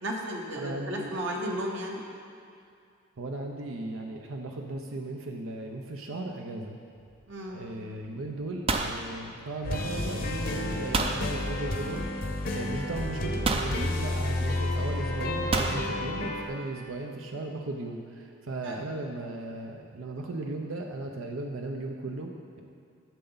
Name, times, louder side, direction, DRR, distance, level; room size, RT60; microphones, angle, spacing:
voice 1, 0.0-2.0 7.3-7.6 18.6-18.8, equal, 60° right, -1 dB, 1.0 m, -34 dB
voice 2, 0.6-1.1 3.2-6.8 7.5-22.6, right 2 dB, 85° right, 2 dB, 0.7 m, -36 dB
sound 1, 7.0-7.4 7.6-8.1 8.3-9.9 10.9-11.2 12.4-12.5 13.4-13.8 15.5-15.8, right 3 dB, 30° right, 0.4 m, -29 dB
sound 2, 9.6-16.5, left 1 dB, 45° left, 0.8 m, -31 dB
12.5 x 6.8 x 3.9 m, 2.4 s
head